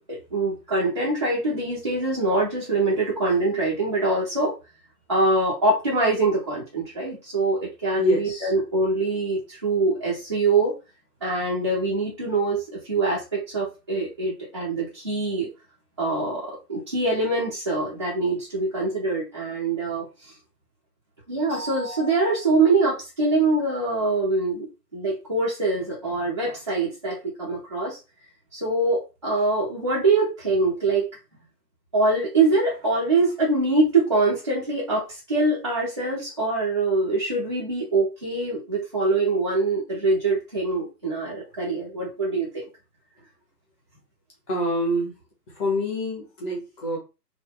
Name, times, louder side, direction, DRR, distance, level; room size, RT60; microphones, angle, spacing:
voice 1, 0.1-4.5 5.1-10.7 11.2-12.6 12.9-15.5 16.0-20.3 21.3-24.7 24.9-28.0 28.5-31.1 31.9-42.6, right 3 dB, 20° right, -8 dB, 0.4 m, -24 dB
voice 2, 8.0-8.5 44.5-45.1 45.5-47.0, equal, 10° left, -3 dB, 0.8 m, -26 dB
3.5 x 2.1 x 3.8 m, 0.29 s
figure-of-eight pair, 130°, 50 cm